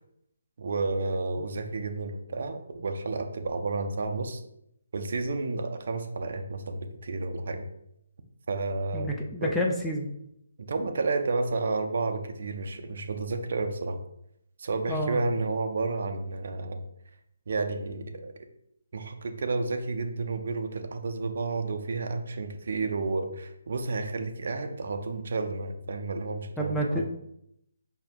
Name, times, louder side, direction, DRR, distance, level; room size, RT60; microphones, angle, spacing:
voice 1, 0.6-4.4 4.9-7.7 8.5-9.1 9.4-9.5 10.6-14.0 14.6-16.8 17.5-18.3 18.9-27.0, right 3 dB, 60° right, 6 dB, 0.5 m, -31 dB
voice 2, 8.9-10.1 14.9-15.2 26.6-27.1, equal, 5° left, -1 dB, 0.3 m, -29 dB
5.3 x 2.6 x 2.3 m, 0.77 s
hypercardioid pair, 160°, 0 cm